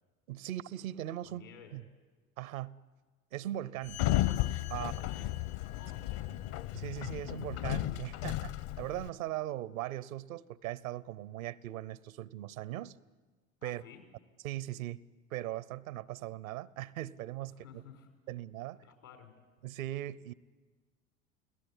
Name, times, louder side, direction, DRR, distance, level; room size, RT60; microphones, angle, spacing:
voice 1, 0.3-1.4 1.7-1.8 2.4-2.7 3.3-4.0 4.7-4.9 6.7-12.9 13.6-13.8 14.4-15.0 15.3-17.8 18.3-18.8 19.6-20.3, right 14 dB, 75° right, 0.9 m, -39 dB
voice 2, 1.2-1.7 4.7-6.3 13.6-14.0 17.6-18.1 18.8-19.3, left 6 dB, 85° left, 5.6 m, -52 dB
Sliding door, 3.9-9.1, left 15 dB, 60° left, 1.1 m, -34 dB
29.5 x 18.0 x 9.9 m
hypercardioid pair, 70°, 41 cm